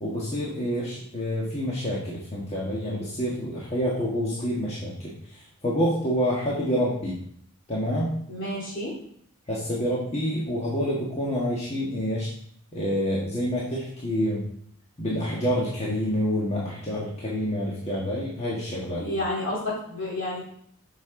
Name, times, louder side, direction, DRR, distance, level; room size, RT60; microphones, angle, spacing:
voice 1, 0.0-7.2 7.7-8.1 9.5-12.3 12.7-14.4 15.0-19.0, equal, 30° left, -6 dB, 1.5 m, -27 dB
voice 2, 8.3-9.0 18.9-20.4, left 1 dB, 55° left, -5 dB, 3.5 m, -30 dB
8.7 x 6.4 x 3.8 m, 0.66 s
head